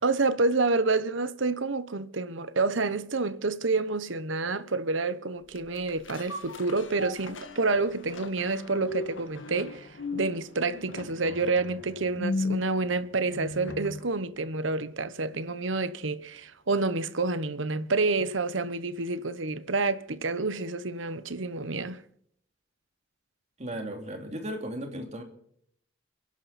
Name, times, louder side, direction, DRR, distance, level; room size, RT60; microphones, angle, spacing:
voice 1, 0.0-9.9 10.1-22.0, right 3 dB, 85° right, 1.1 m, -28 dB
sound 1, 5.5-14.1 14.5-14.6, left 2 dB, 90° left, 2.0 m, -37 dB
voice 2, 23.6-25.2, right 1 dB, 35° right, 3.0 m, -36 dB
29.5 x 11.0 x 4.3 m
head